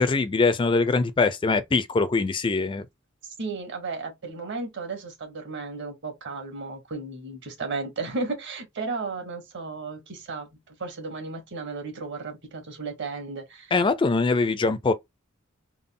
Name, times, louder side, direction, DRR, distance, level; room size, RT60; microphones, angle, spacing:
voice 1, 0.0-2.9 13.7-14.9, left 3 dB, 25° left, 0.3 m, -22 dB
voice 2, 3.4-13.7, right 3 dB, 60° right, 1.4 m, -34 dB
3.7 x 2.1 x 3.6 m
head